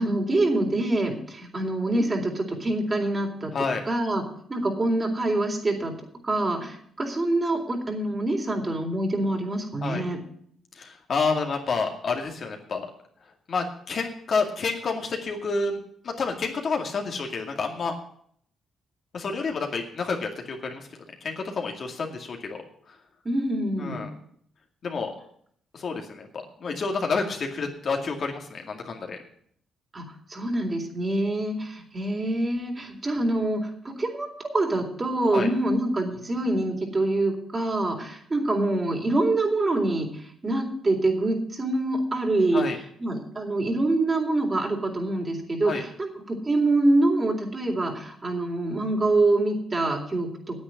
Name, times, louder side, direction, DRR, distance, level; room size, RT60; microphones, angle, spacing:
voice 1, 0.0-3.5 3.9-4.2 4.5-5.9 6.2-10.2 23.2-24.0 29.9-30.0 30.3-40.1 40.4-42.7 43.0-50.6, right 2 dB, 35° right, 2 dB, 3.9 m, -25 dB
voice 2, 3.5-3.8 9.8-10.1 10.7-12.9 13.5-15.8 16.0-18.0 19.1-20.9 21.2-23.0 23.8-24.1 24.8-25.1 25.7-29.2 35.3-35.5 42.5-42.8 45.6-45.8, left 4 dB, 55° left, 2 dB, 2.2 m, -29 dB
9.6 x 8.4 x 9.2 m, 0.65 s
supercardioid pair, 60°, 0 cm